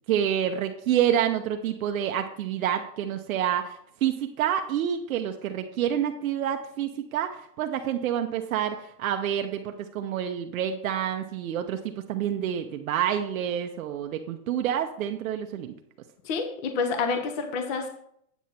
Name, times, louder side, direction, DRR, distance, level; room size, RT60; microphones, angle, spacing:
voice 1, 0.1-15.7, right 10 dB, 55° right, 5 dB, 0.8 m, -28 dB
voice 2, 16.2-17.9, left 4 dB, 30° left, 6 dB, 0.8 m, -28 dB
9.5 x 7.2 x 4.3 m, 0.70 s
supercardioid pair, 160°, 50 cm